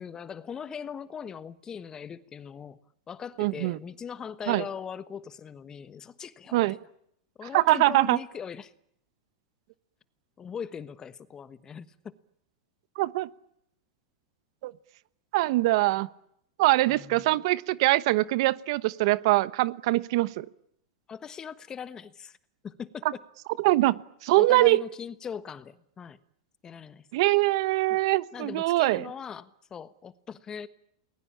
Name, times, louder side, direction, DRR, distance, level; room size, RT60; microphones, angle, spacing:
voice 1, 0.0-2.8 3.1-6.8 7.4-8.7 10.4-12.1 16.9-17.3 21.1-22.4 22.6-23.2 24.3-26.2 26.6-27.1 27.9-28.0 28.3-30.7, left 7 dB, 20° left, 1.3 m, -40 dB
voice 2, 3.4-3.8 4.5-4.6 6.5-6.8 7.5-8.2 13.0-13.3 14.6-14.7 15.3-16.1 16.6-20.4 23.6-23.9 24.2-24.8 27.1-29.1, right 19 dB, 60° right, 1.0 m, -23 dB
29.0 x 21.0 x 8.7 m
supercardioid pair, 130°, 3 cm